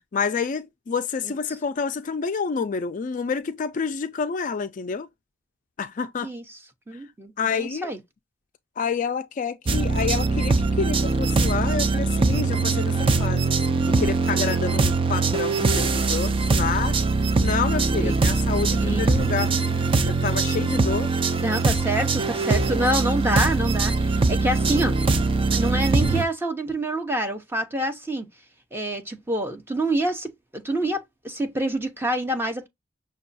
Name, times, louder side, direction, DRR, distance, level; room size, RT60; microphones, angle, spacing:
voice 1, 0.1-5.1 5.8-6.3 7.4-7.9 8.8-13.5 13.8-17.0 17.4-19.5 20.0-21.1, left 5 dB, 40° left, 0.4 m, -28 dB
voice 2, 6.9-8.0 15.2-15.3 18.0-18.1 18.8-19.1 21.4-25.0 25.5-28.3 28.7-32.7, right 1 dB, 10° right, 0.8 m, -27 dB
sound 1, 9.7-26.2, right 3 dB, 25° right, 0.4 m, -22 dB
6.1 x 2.3 x 2.6 m
head